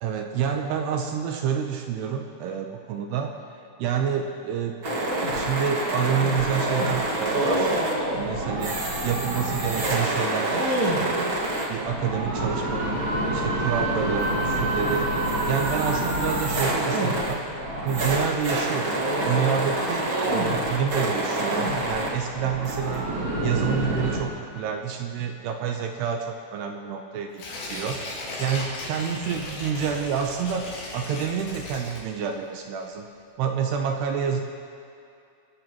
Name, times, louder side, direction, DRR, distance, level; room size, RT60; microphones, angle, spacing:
voice 1, 0.0-3.4 3.8-4.9 5.3-7.8 8.2-10.6 10.9-11.4 11.7-13.0 13.3-15.1 15.5-17.4 17.8-19.0 19.3-23.1 23.4-28.1 28.4-33.1 33.4-34.4, right 7 dB, 85° right, 3 dB, 2.5 m, -28 dB
sound 1, 4.8-24.2, right 1 dB, 60° right, 1.3 m, -26 dB
Tearing, 27.3-32.5 32.8-32.9, left 2 dB, 65° left, 5.6 m, -36 dB
26.0 x 13.5 x 3.0 m, 2.5 s
omnidirectional pair, 5.6 m